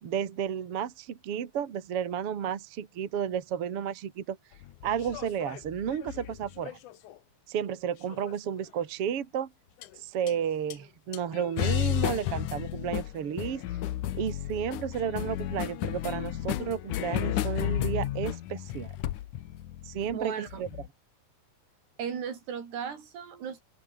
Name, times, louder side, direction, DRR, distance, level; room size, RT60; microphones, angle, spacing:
voice 1, 0.0-4.4 4.8-6.8 7.5-9.5 10.0-13.6 14.1-18.9 19.9-20.7, right 8 dB, 45° right, 2.2 m, -32 dB
sound 1, 4.6-7.2 8.1-8.6 9.8-9.9 10.3-10.4 10.7-10.8 11.1-20.9, left 13 dB, 70° left, 2.0 m, -33 dB
voice 2, 20.1-20.6 22.0-23.6, right 7 dB, 75° right, 5.9 m, -36 dB
omnidirectional pair, 4.9 m